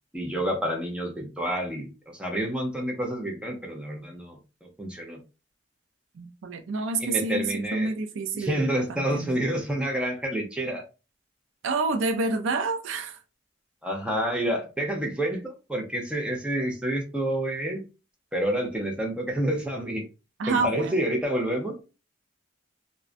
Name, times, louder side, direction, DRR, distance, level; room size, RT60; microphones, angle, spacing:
voice 1, 0.1-5.2 7.0-7.9 8.3-10.8 13.8-17.8 18.3-20.0 20.5-21.8, right 1 dB, 5° right, 0.5 m, -29 dB
voice 2, 6.1-9.4 11.6-13.2 20.4-21.0, right 3 dB, 75° right, 0.4 m, -28 dB
2.4 x 2.1 x 2.4 m
head